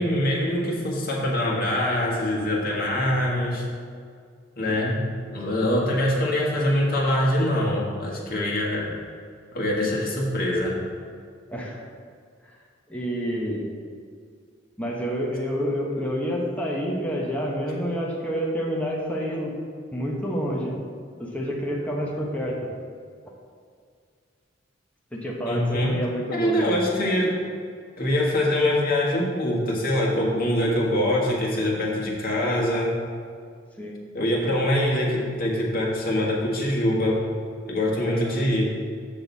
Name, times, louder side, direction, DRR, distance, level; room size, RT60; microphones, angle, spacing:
voice 1, 0.0-3.6 4.6-5.0 5.3-8.9 9.5-10.8 25.5-26.0 26.3-27.4 28.0-32.9 34.1-37.2 37.7-38.8, left 1 dB, 50° left, -3 dB, 1.7 m, -24 dB
voice 2, 11.5-11.8 12.9-13.7 14.8-19.5 19.9-20.7 21.2-22.7 25.1-26.8 33.8-34.0 38.1-38.4, equal, 10° left, -3 dB, 1.0 m, -28 dB
7.4 x 6.6 x 4.0 m, 2.1 s
head